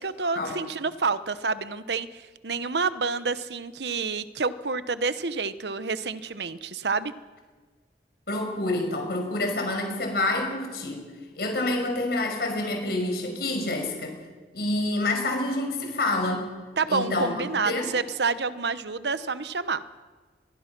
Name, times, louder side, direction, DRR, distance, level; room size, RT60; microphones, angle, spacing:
voice 1, 0.0-7.1 16.8-19.8, right 4 dB, 75° right, 13 dB, 1.0 m, -28 dB
voice 2, 8.3-11.0 11.3-14.1 14.5-16.5 16.9-17.3 17.6-17.9, left 2 dB, 60° left, 3 dB, 6.1 m, -27 dB
27.5 x 22.0 x 6.1 m, 1.4 s
head